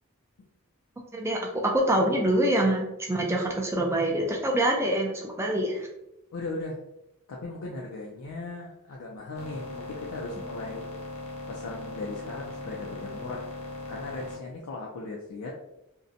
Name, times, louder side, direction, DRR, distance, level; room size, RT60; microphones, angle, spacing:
voice 1, 1.1-5.9, right 1 dB, 10° right, 0 dB, 0.4 m, -25 dB
voice 2, 6.3-6.8 7.3-10.8 11.5-13.5 13.9-15.5, left 2 dB, 80° left, -2 dB, 0.4 m, -37 dB
sound 1, 9.4-14.4, left 2 dB, 30° left, 0.6 m, -39 dB
2.6 x 2.1 x 2.5 m, 0.87 s
head